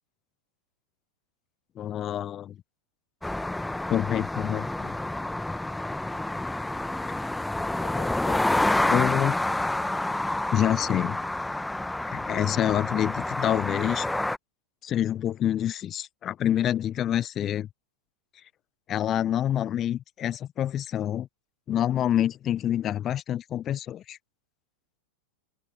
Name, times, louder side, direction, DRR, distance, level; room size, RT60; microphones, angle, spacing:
voice 1, 1.8-2.6 3.9-5.0 7.8-9.3 10.5-11.2 12.1-14.1 14.8-17.7 18.9-21.3 21.7-24.2, left 11 dB, 30° left, 0.7 m, -27 dB
sound 1, 3.2-14.4, left 1 dB, 5° left, 1.2 m, -28 dB
open air
figure-of-eight pair, 90°, 0 cm